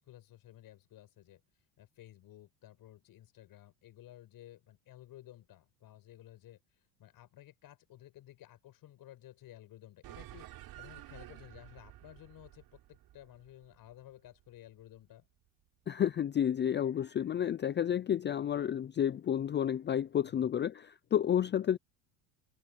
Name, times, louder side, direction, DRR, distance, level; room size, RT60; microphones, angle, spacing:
voice 1, 0.0-15.3 20.2-20.7, left 13 dB, 55° left, 7.1 m, -55 dB
sound 1, 10.0-14.8, right 14 dB, 60° right, 6.1 m, -52 dB
voice 2, 15.9-21.8, left 9 dB, 25° left, 0.6 m, -31 dB
supercardioid pair, 100°, 41 cm